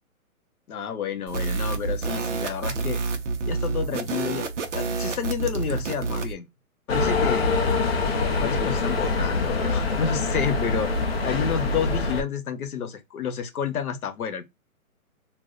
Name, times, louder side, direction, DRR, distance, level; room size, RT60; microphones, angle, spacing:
voice 1, 0.7-3.0 3.5-6.5 6.9-7.5 8.4-10.9 11.2-14.5, left 7 dB, 85° left, 0.9 m, -30 dB
sound 1, 1.3-6.3, right 4 dB, 55° right, 0.7 m, -28 dB
sound 2, 6.9-12.2, left 3 dB, 45° left, 0.5 m, -24 dB
2.4 x 2.1 x 3.6 m
hypercardioid pair, 175°, 43 cm